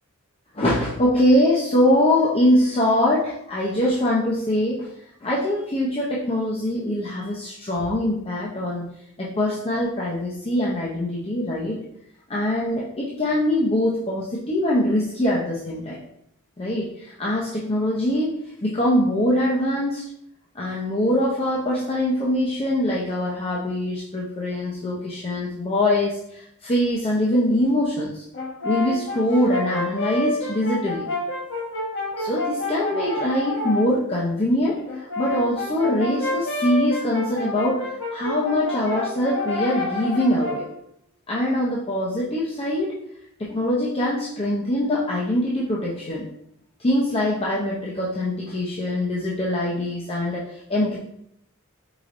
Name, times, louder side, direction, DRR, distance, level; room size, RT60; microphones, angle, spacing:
voice 1, 0.5-4.9 5.2-8.8 9.2-11.8 12.3-16.0 16.6-18.3 18.6-20.0 20.5-28.2 28.6-31.1 32.2-40.6 41.3-42.9 43.4-46.3 46.8-51.0, left 1 dB, 30° left, -5 dB, 0.7 m, -23 dB
Brass instrument, 28.3-33.9 34.9-40.7, left 2 dB, 65° left, 1.3 m, -29 dB
4.9 x 4.0 x 2.5 m, 0.74 s
head